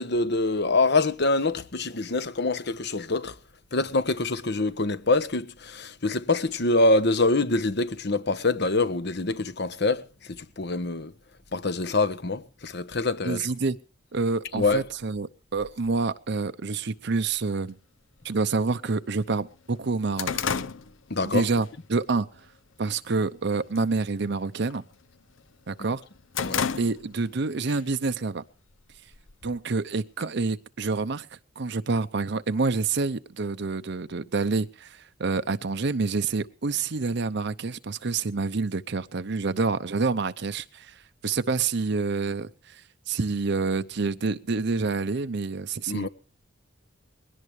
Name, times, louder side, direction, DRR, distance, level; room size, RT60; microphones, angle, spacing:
voice 1, 0.0-3.3 3.7-10.0 10.6-11.1 11.5-13.5 14.6-14.8 21.1-21.4 26.4-26.6 45.9-46.1, left 2 dB, 55° left, 1.2 m, -25 dB
voice 2, 13.2-13.8 14.1-17.8 18.2-20.4 21.2-22.3 22.8-24.8 25.7-26.0 26.8-28.4 29.4-40.9 41.2-42.8 43.1-46.1, right 4 dB, 60° right, 0.7 m, -27 dB
sound 1, 17.3-17.4 18.3-18.4 18.9-19.0 19.3-21.7 22.1-22.4 22.8-23.3 23.6-23.9 24.2-25.5 25.9-27.3 27.7-27.8 28.7-29.6, left 6 dB, 80° left, 0.8 m, -32 dB
21.0 x 17.5 x 3.2 m
head